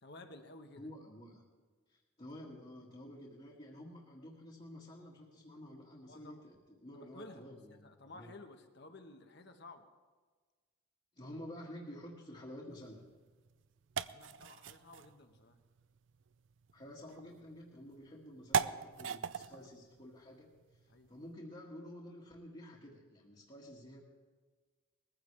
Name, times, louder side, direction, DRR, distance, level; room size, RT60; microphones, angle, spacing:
voice 1, 0.0-0.9 6.1-6.4 6.9-9.9 14.1-15.6 19.5-19.7 20.9-21.1, left 2 dB, 50° left, 6 dB, 1.2 m, -54 dB
voice 2, 0.8-1.4 1.9-8.3 11.2-13.0 16.7-24.0, left 1 dB, 30° left, -5 dB, 1.8 m, -51 dB
sound 1, 12.7-21.3, right 6 dB, 60° right, 0.4 m, -42 dB
20.5 x 15.0 x 3.3 m, 1.4 s
head